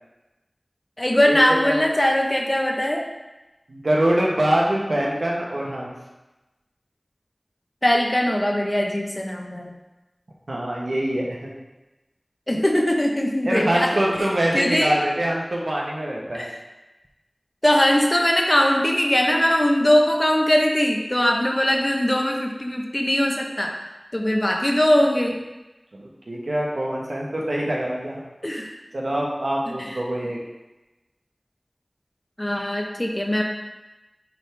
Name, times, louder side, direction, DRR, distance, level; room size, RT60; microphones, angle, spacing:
voice 1, 1.0-3.0 7.8-9.7 12.5-14.3 14.5-14.9 16.3-16.6 17.6-23.7 24.1-25.4 28.4-28.7 29.7-30.0 32.4-33.4, left 1 dB, 30° left, 1 dB, 0.9 m, -21 dB
voice 2, 3.7-5.9 10.5-11.5 13.4-16.5 25.9-28.2 28.9-30.4, right 1 dB, 90° right, -3 dB, 1.1 m, -24 dB
8.7 x 3.7 x 3.3 m, 1.1 s
wide cardioid pair, 45°, 0 cm